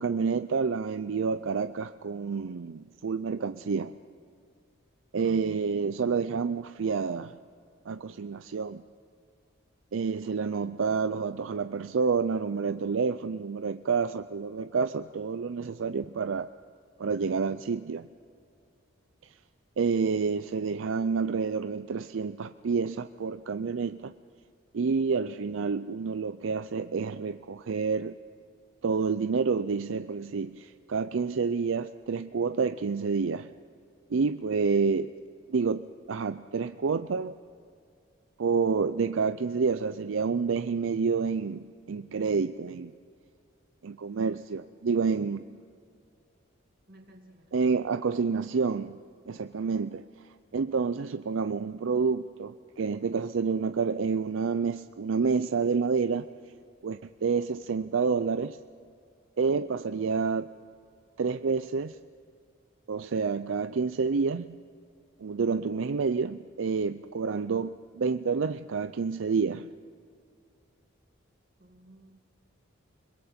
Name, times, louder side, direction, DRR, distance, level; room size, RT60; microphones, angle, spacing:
voice 1, 0.0-3.9 5.1-7.4 7.9-8.8 9.9-16.5 17.0-18.1 19.2-19.3 19.8-24.1 24.7-28.2 28.8-33.5 34.1-35.1 35.5-37.4 38.4-42.9 43.8-45.4 47.5-49.0 49.3-50.0 50.5-56.3 56.8-58.6 59.4-60.5 61.2-62.0 62.9-64.6 65.2-69.7, right 5 dB, 75° right, 11 dB, 0.5 m, -29 dB
voice 2, 46.9-47.5 71.6-72.2, right 1 dB, 50° right, 3 dB, 2.2 m, -55 dB
29.5 x 21.5 x 4.4 m, 2.3 s
head